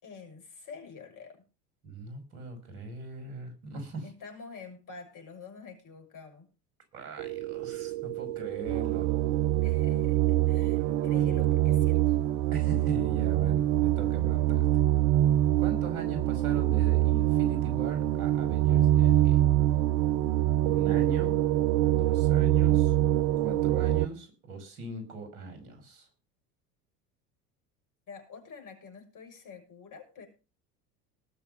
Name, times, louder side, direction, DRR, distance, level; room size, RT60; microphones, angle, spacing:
voice 1, 0.0-1.4 4.0-6.5 9.6-12.2 28.1-30.3, left 5 dB, 40° left, 5 dB, 6.7 m, -47 dB
voice 2, 1.8-4.1 6.9-9.1 12.5-14.7 15.6-19.5 20.6-21.4 21.9-22.9 23.4-26.1, right 3 dB, 70° right, 8 dB, 5.6 m, -40 dB
sound 1, 7.2-24.1, right 14 dB, 55° right, 0.7 m, -25 dB
19.5 x 7.1 x 5.5 m, 0.32 s
figure-of-eight pair, 70°, 47 cm